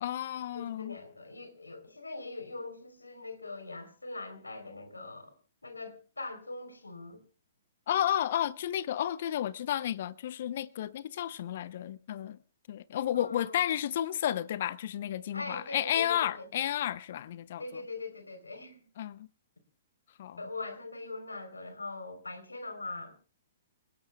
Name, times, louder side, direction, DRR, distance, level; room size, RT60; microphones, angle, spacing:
voice 1, 0.0-1.0 7.9-12.4 12.7-17.8 19.0-19.3 20.2-20.4, left 11 dB, 55° left, 0.7 m, -32 dB
voice 2, 0.5-5.3 5.6-7.2 13.1-13.6 15.3-16.5 17.6-18.8 20.3-23.1, left 3 dB, 85° left, 3.7 m, -42 dB
29.0 x 17.0 x 2.3 m
figure-of-eight pair, 120°, 0 cm